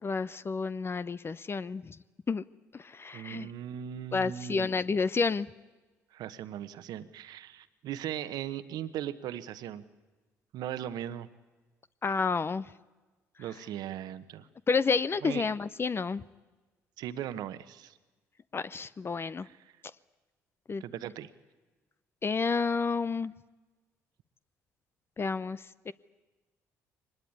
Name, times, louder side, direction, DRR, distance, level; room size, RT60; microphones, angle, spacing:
voice 1, 0.0-2.0 2.3-2.4 2.7-3.5 4.1-5.5 12.0-12.7 14.7-16.2 18.5-19.5 20.7-20.8 22.2-23.3 25.2-25.9, left 4 dB, 35° left, 16 dB, 0.7 m, -30 dB
voice 2, 3.1-4.7 6.1-9.8 10.5-11.3 13.4-14.5 15.2-15.5 17.0-17.9 19.4-19.7 20.8-21.3, right 11 dB, 70° right, 12 dB, 1.2 m, -38 dB
23.0 x 20.0 x 9.6 m, 1.2 s
hypercardioid pair, 60°, 7 cm